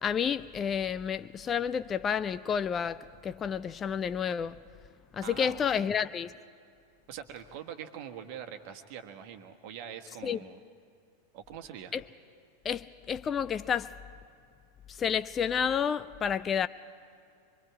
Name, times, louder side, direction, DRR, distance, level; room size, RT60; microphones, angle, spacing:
voice 1, 0.0-4.6 5.1-6.3 10.2-10.4 11.9-12.0 12.6-13.9 14.9-16.7, left 7 dB, 25° left, 0.4 m, -30 dB
voice 2, 5.2-5.9 7.1-10.6 11.3-12.0, right 8 dB, 45° right, 1.4 m, -44 dB
25.0 x 23.5 x 4.7 m
figure-of-eight pair, 90°, 0 cm